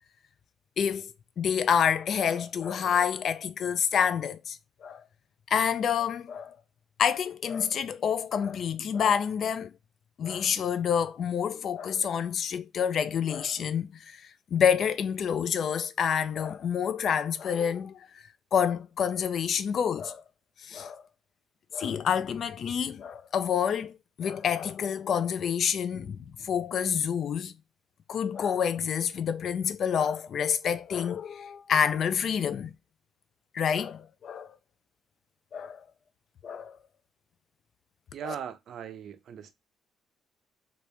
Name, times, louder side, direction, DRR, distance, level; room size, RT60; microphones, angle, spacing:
voice 1, 0.8-5.0 5.5-6.6 7.0-9.7 10.2-14.2 14.5-18.1 18.5-20.2 20.7-21.0 21.7-27.5 28.1-32.7 33.5-34.6 35.5-35.8 36.4-36.7 38.2-38.3, left 7 dB, 55° left, 0.4 m, -28 dB
voice 2, 38.1-39.5, right 8 dB, 60° right, 0.5 m, -39 dB
3.0 x 2.6 x 3.2 m
cardioid pair, 130°, 0 cm